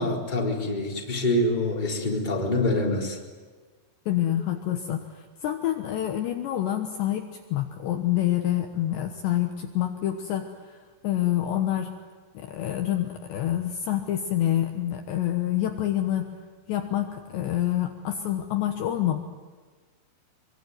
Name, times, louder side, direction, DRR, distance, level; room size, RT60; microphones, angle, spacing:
voice 1, 0.0-3.2, left 1 dB, 10° left, -1 dB, 3.6 m, -25 dB
voice 2, 4.1-10.5 11.0-11.9 12.3-16.3 16.7-19.2, left 12 dB, 70° left, 5 dB, 3.1 m, -27 dB
25.0 x 24.0 x 9.4 m, 1.4 s
omnidirectional pair, 5.8 m